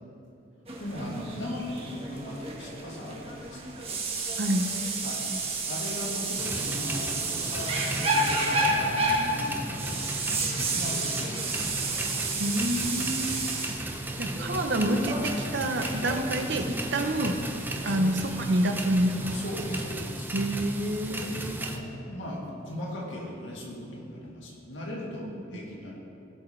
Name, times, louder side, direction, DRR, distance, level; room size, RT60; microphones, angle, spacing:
sound 1, 0.7-19.8, right 2 dB, 30° right, 1.4 m, -32 dB
voice 1, 0.8-3.8 5.0-5.2 5.7-10.0 10.5-11.7 17.8-18.1 19.3-20.3 21.1-26.0, left 1 dB, 70° left, -4 dB, 2.2 m, -38 dB
voice 2, 4.4-4.7 12.4-13.5 14.2-17.4 17.8-19.4 20.3-21.6 25.2-25.3, right 1 dB, 65° right, 6 dB, 0.8 m, -28 dB
sound 2, 6.4-21.8, right 1 dB, 10° right, 0.7 m, -35 dB
17.5 x 6.1 x 3.3 m, 2.8 s
head